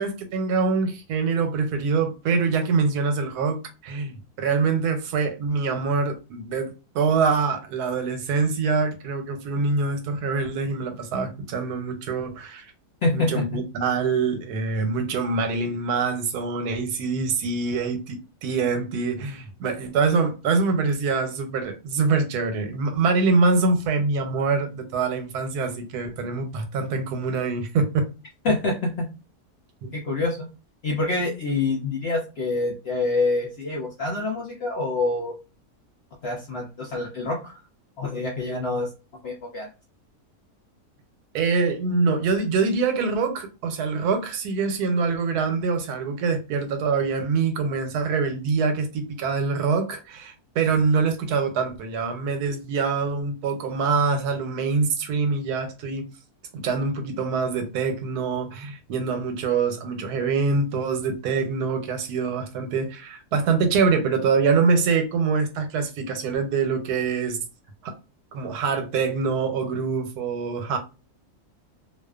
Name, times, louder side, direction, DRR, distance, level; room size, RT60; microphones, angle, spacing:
voice 1, 0.0-12.7 13.1-28.1 28.5-28.6 29.8-29.9 41.3-56.1 56.5-67.4 67.8-67.9 68.3-70.8, right 4 dB, 90° right, 1.2 m, -24 dB
voice 2, 13.0-13.6 28.4-29.1 29.9-30.5 30.8-35.3 36.2-37.5 38.0-38.9 39.2-39.7, left 3 dB, 70° left, 0.6 m, -26 dB
2.4 x 2.4 x 2.3 m
omnidirectional pair, 1.6 m